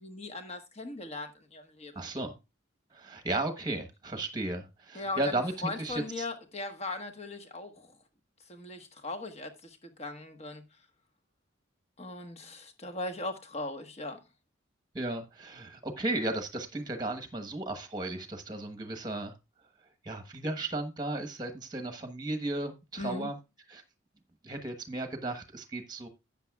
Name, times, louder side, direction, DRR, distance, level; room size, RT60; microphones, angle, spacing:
voice 1, 0.0-1.9 4.9-8.0 8.5-10.6 12.0-14.2 23.0-23.3, left 2 dB, 35° left, 1.4 m, -39 dB
voice 2, 1.9-2.3 2.9-6.3 14.9-19.3 20.0-23.4 23.7-23.8 24.4-26.1, right 2 dB, 20° right, 1.1 m, -35 dB
12.5 x 8.6 x 2.3 m
head